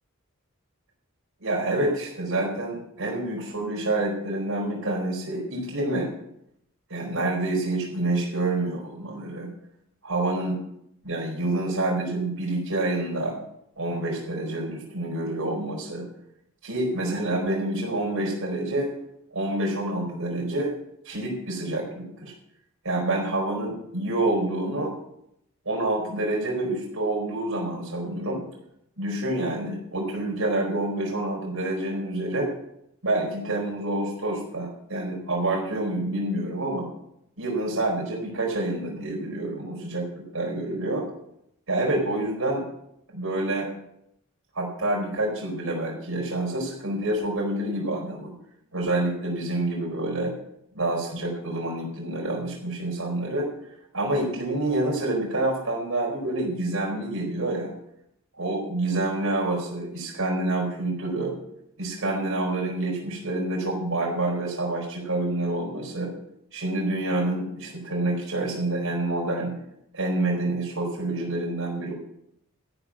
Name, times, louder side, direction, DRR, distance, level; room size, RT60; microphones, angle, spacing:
voice 1, 1.4-6.1 6.9-9.5 10.0-10.6 11.0-13.4 13.8-16.1 16.6-18.9 19.3-20.7 21.0-22.3 22.8-24.9 25.6-28.4 29.0-32.5 33.0-36.9 37.4-41.1 41.7-42.6 43.1-43.7 44.5-48.3 48.7-50.3 50.7-53.5 53.9-57.7 58.4-61.3 61.8-66.1 66.5-69.5 69.9-71.9, right 2 dB, 85° right, -1 dB, 4.5 m, -27 dB
14.0 x 6.4 x 8.7 m, 0.78 s
head